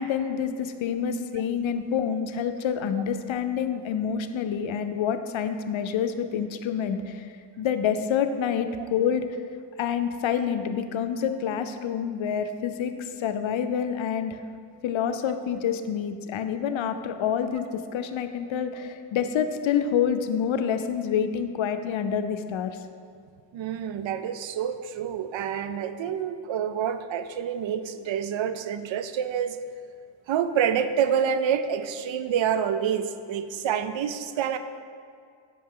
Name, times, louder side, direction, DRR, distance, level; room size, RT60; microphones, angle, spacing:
voice 1, 0.0-7.3 7.6-9.3 9.8-14.4 14.8-22.8, left 8 dB, 75° left, 9 dB, 0.6 m, -27 dB
voice 2, 23.5-29.6 30.3-34.6, right 8 dB, 75° right, 11 dB, 0.6 m, -27 dB
8.5 x 5.7 x 3.7 m, 2.2 s
cardioid pair, 75°, 47 cm